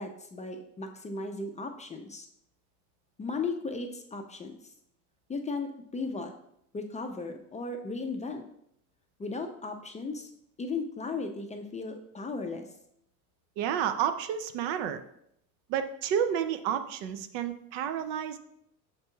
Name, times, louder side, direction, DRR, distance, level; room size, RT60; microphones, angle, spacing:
voice 1, 0.0-2.3 3.2-4.6 5.3-6.3 6.7-8.4 9.2-10.3 10.6-12.7, left 3 dB, 20° left, 4 dB, 0.4 m, -36 dB
voice 2, 13.6-15.0 15.7-18.4, right 9 dB, 75° right, 9 dB, 0.5 m, -30 dB
6.5 x 2.9 x 2.2 m, 0.73 s
supercardioid pair, 85°, 41 cm